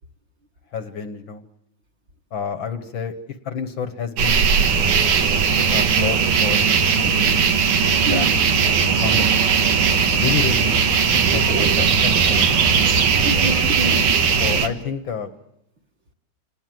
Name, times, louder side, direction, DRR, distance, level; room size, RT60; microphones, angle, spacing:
voice 1, 0.7-1.4 2.3-3.1 3.4-4.4 5.7-7.4 8.0-8.4 8.7-9.4 10.1-12.6 14.4-15.3, left 6 dB, 60° left, 9 dB, 1.3 m, -29 dB
sound 1, 4.2-14.7, right 6 dB, 80° right, 3.0 m, -18 dB
sound 2, 5.5-13.4, right 8 dB, 60° right, 2.2 m, -28 dB
voice 2, 11.2-11.7 12.9-14.3, right 3 dB, 45° right, 3 dB, 1.9 m, -27 dB
27.0 x 19.5 x 7.8 m, 0.80 s
omnidirectional pair, 3.5 m